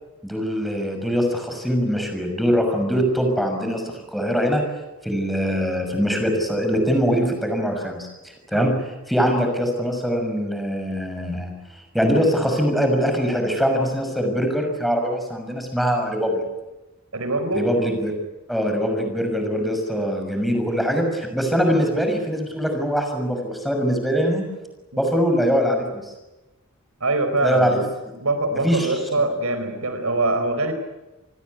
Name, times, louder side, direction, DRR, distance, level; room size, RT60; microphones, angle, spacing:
voice 1, 0.2-4.6 5.0-8.7 9.1-11.5 11.9-16.4 17.5-18.1 18.5-24.4 25.0-26.1 27.4-27.8 28.6-28.9, equal, ahead, 4 dB, 6.2 m, -22 dB
voice 2, 17.1-17.7 24.9-25.0 27.0-27.8 28.1-30.7, right 2 dB, 85° right, 9 dB, 4.5 m, -23 dB
28.0 x 20.0 x 9.6 m, 1.1 s
head